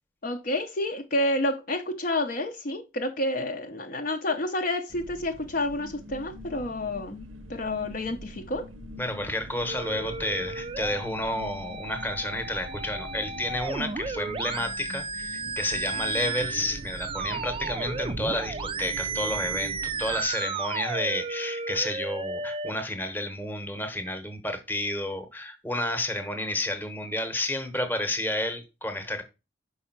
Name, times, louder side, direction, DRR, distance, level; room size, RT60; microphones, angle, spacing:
voice 1, 0.2-8.6, left 1 dB, 45° left, 0.6 m, -29 dB
sound 1, 4.9-20.3, right 1 dB, 85° right, 0.7 m, -43 dB
voice 2, 9.0-29.2, left 1 dB, 10° left, 0.9 m, -31 dB
sound 2, 9.7-22.7, right 4 dB, 25° right, 0.4 m, -34 dB
5.4 x 4.7 x 5.9 m
head